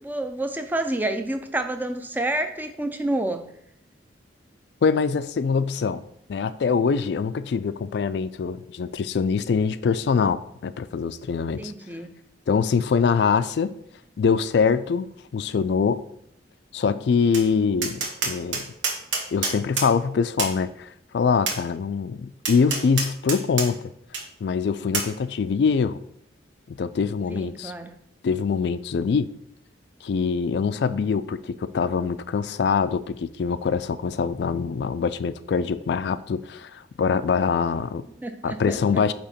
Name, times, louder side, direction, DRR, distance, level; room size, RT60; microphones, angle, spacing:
voice 1, 0.0-3.5 11.6-12.2 27.3-28.0 38.2-39.0, right 1 dB, 10° right, 0.4 m, -29 dB
voice 2, 4.8-6.0 6.3-11.7 12.5-13.7 14.2-16.0 16.7-18.7 19.3-23.8 24.4-26.0 26.7-27.7 28.2-29.3 30.0-38.1 38.4-39.1, left 5 dB, 65° left, 0.3 m, -24 dB
Tap, 17.3-17.5 17.8-19.9 20.4-20.5 21.5-21.6 22.4-23.7 24.1-24.2 24.9-25.1, right 4 dB, 90° right, 1.1 m, -27 dB
8.6 x 2.9 x 4.2 m
head